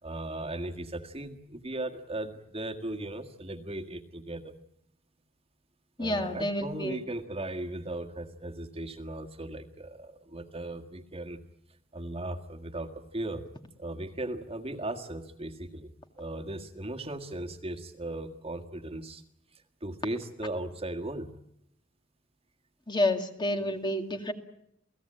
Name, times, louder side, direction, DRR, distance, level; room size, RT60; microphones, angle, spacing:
voice 1, 0.0-4.5 6.0-11.4 11.9-13.4 13.8-19.2 19.8-21.3, right 1 dB, 30° right, 4 dB, 1.8 m, -37 dB
voice 2, 6.0-7.0 22.9-24.3, left 1 dB, 25° left, 5 dB, 2.1 m, -29 dB
28.5 x 18.5 x 8.8 m, 0.75 s
head